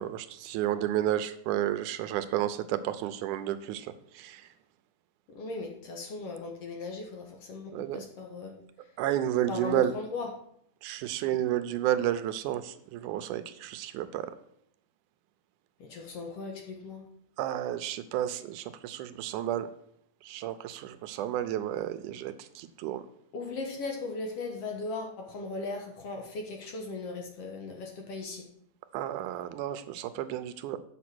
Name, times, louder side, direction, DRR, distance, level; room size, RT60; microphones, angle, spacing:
voice 1, 0.0-3.9 4.2-4.4 7.7-8.0 9.0-9.9 10.8-14.3 17.4-19.7 20.2-23.0 28.9-30.8, right 12 dB, 80° right, 12 dB, 2.0 m, -31 dB
voice 2, 5.3-8.6 9.5-10.3 15.8-17.0 23.3-28.5, left 3 dB, 55° left, 2 dB, 2.1 m, -38 dB
8.4 x 6.5 x 6.0 m, 0.70 s
omnidirectional pair, 3.7 m